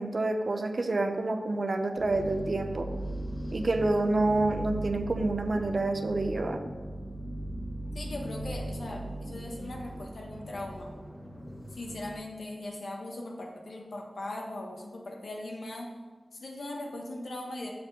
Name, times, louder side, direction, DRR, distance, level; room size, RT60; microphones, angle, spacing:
voice 1, 0.0-2.9 3.5-6.6, right 2 dB, 55° right, 6 dB, 0.7 m, -28 dB
sound 1, 2.0-12.1, right 1 dB, 25° left, 1.6 m, -38 dB
voice 2, 7.9-10.9 11.7-15.9 16.3-17.7, left 1 dB, 75° left, 0 dB, 1.3 m, -39 dB
6.9 x 4.4 x 6.2 m, 1.4 s
wide cardioid pair, 85°, 0 cm